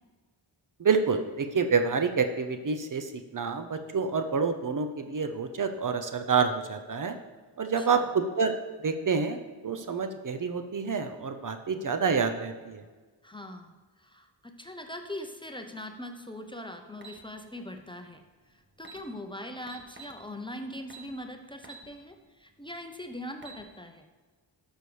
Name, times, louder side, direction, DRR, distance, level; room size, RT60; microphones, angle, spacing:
voice 1, 0.8-7.2 7.6-8.6 8.8-12.8, right 5 dB, 45° right, 7 dB, 0.7 m, -28 dB
voice 2, 13.2-13.7 14.0-18.2 18.8-24.0, left 1 dB, 10° left, 5 dB, 0.7 m, -41 dB
sound 1, 17.0-17.2 18.4-18.5 18.8-19.0 19.7-20.2 20.9-21.1 21.6-21.9 22.3-22.4 23.2-23.6, right 4 dB, 25° right, 1.2 m, -47 dB
12.0 x 6.2 x 3.3 m, 1.3 s
cardioid pair, 85°, 45 cm